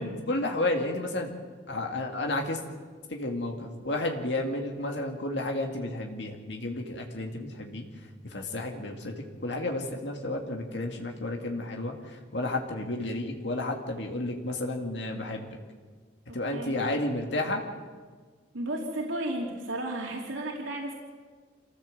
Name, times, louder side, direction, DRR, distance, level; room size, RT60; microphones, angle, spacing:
voice 1, 0.0-1.4 1.7-2.6 3.1-7.8 8.2-15.6 16.3-17.6, left 2 dB, 65° left, 2 dB, 2.2 m, -32 dB
voice 2, 16.3-16.7 18.5-20.9, right 1 dB, 90° right, -1 dB, 3.1 m, -33 dB
27.0 x 15.0 x 7.8 m, 1.5 s
head